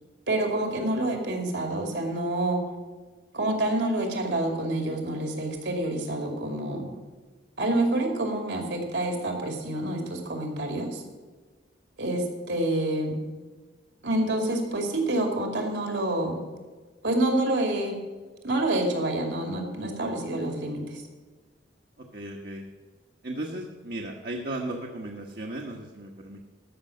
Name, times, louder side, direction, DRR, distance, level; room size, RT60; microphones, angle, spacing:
voice 1, 0.3-2.6 3.3-6.9 7.6-11.0 12.0-13.2 14.0-16.4 17.0-18.0 18.4-21.0, right 1 dB, 75° right, 3 dB, 2.6 m, -27 dB
voice 2, 22.1-22.6 23.2-26.4, right 1 dB, 55° right, 0 dB, 1.2 m, -35 dB
13.5 x 6.2 x 7.6 m, 1.3 s
head